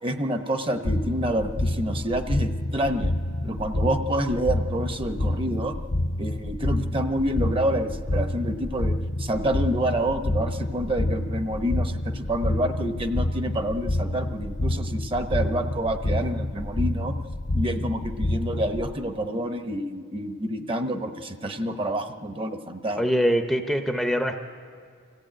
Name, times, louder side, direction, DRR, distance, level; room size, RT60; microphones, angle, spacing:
voice 1, 0.0-3.1 3.4-5.7 6.2-17.1 17.5-23.0, right 1 dB, 25° right, 7 dB, 0.9 m, -28 dB
sound 1, 0.8-18.9, left 1 dB, 40° left, 0.6 m, -28 dB
voice 2, 23.0-24.4, equal, ahead, 5 dB, 0.7 m, -23 dB
24.0 x 15.0 x 8.8 m, 2.2 s
head